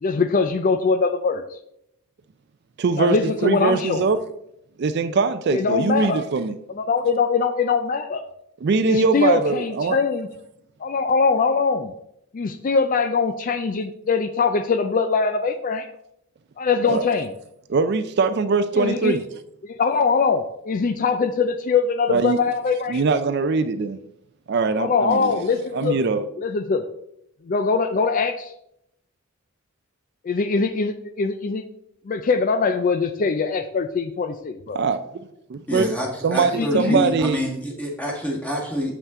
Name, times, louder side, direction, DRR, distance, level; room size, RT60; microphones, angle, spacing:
voice 1, 0.0-1.6 3.0-4.1 5.5-6.3 6.8-8.2 8.8-10.3 10.8-11.9 12.3-15.9 16.6-17.3 18.7-19.1 19.6-23.0 24.8-26.0 26.4-26.8 27.4-28.5 30.2-31.6 32.1-34.8 36.5-37.0, left 4 dB, 40° left, 9 dB, 0.4 m, -22 dB
voice 2, 2.8-4.2 4.8-6.6 8.6-10.0 16.9-17.0 17.7-19.2 22.1-22.4 22.9-24.0 24.5-25.4 25.7-26.3 34.7-35.0 35.5-35.9 36.2-37.4, right 4 dB, 50° right, 11 dB, 0.4 m, -22 dB
voice 3, 35.7-39.0, equal, 5° left, -1 dB, 1.4 m, -27 dB
7.2 x 5.6 x 3.6 m, 0.78 s
head